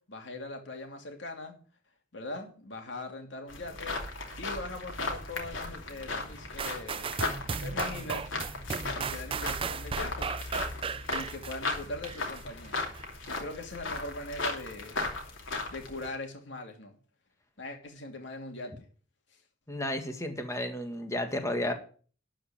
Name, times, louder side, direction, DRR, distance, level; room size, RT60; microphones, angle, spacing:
voice 1, 0.1-1.6 2.1-4.0 4.4-7.2 7.6-8.3 8.9-10.3 11.1-12.8 13.3-15.0 15.7-16.9 17.6-18.8, left 2 dB, 65° left, 3 dB, 2.7 m, -41 dB
sound 1, 3.5-16.1, left 3 dB, 90° left, 2.8 m, -36 dB
sound 2, 6.6-12.4 12.9-13.1, right 5 dB, 30° right, 0.4 m, -35 dB
voice 2, 19.7-21.7, left 1 dB, 15° left, 5 dB, 1.7 m, -32 dB
12.0 x 5.1 x 8.7 m, 0.42 s
head